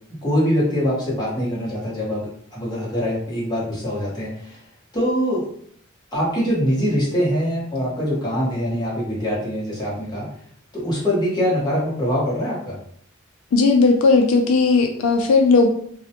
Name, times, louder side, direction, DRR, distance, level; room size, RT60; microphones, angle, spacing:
voice 1, 0.1-4.6 4.9-5.5 6.1-10.3 10.7-12.8, equal, 20° left, -7 dB, 0.9 m, -23 dB
voice 2, 13.5-15.7, left 4 dB, 85° left, 4 dB, 0.3 m, -16 dB
2.3 x 2.1 x 2.8 m, 0.62 s
head